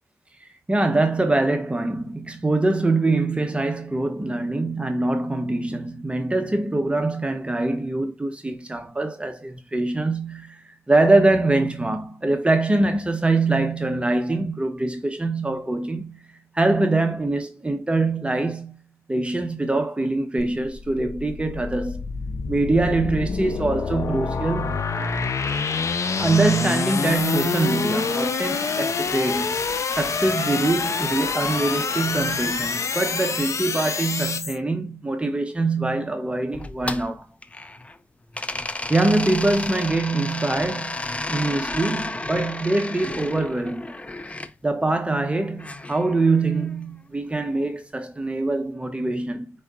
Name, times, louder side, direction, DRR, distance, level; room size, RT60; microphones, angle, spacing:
voice 1, 0.4-16.2 16.5-18.8 19.1-22.0 22.5-24.8 25.8-25.9 26.2-29.6 29.9-37.3 38.9-41.0 41.3-43.9 44.6-49.5, right 2 dB, 20° right, 0.9 m, -23 dB
sound 1, 20.4-34.6, left 5 dB, 60° left, 0.7 m, -26 dB
sound 2, 36.5-38.0 38.3-44.5 45.6-46.7, left 2 dB, 20° left, 0.5 m, -32 dB
4.7 x 4.3 x 2.5 m
cardioid pair, 75°, 6 cm